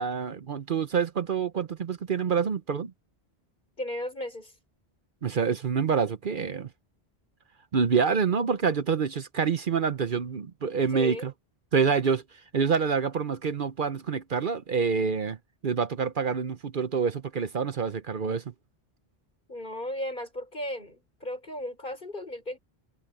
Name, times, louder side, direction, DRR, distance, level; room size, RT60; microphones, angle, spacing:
voice 1, 0.0-2.9 5.2-6.7 7.7-11.3 11.7-12.2 12.5-15.4 15.6-18.4, right 6 dB, 55° right, 0.9 m, -27 dB
voice 2, 3.8-4.5 10.9-11.3 19.5-22.6, left 1 dB, 55° left, 5.6 m, -35 dB
omnidirectional pair, 1.0 m